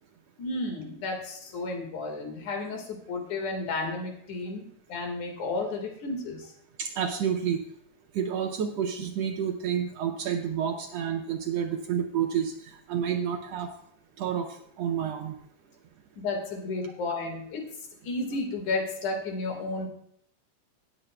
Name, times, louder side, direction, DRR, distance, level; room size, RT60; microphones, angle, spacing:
voice 1, 0.4-6.5 16.2-17.6 18.0-19.9, left 3 dB, 75° left, 2 dB, 3.2 m, -32 dB
voice 2, 6.8-7.6 8.1-13.7 14.2-15.4, right 8 dB, 75° right, 4 dB, 1.6 m, -29 dB
18.0 x 8.2 x 2.2 m, 0.69 s
omnidirectional pair, 3.4 m